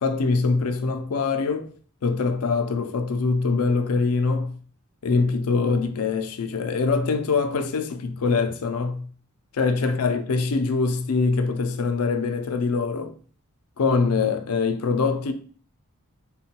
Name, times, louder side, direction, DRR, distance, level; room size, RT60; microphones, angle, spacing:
voice 1, 0.0-1.7 2.0-4.6 5.0-9.1 9.5-13.1 13.8-15.3, left 4 dB, 85° left, 0.4 m, -23 dB
3.6 x 2.3 x 4.2 m
head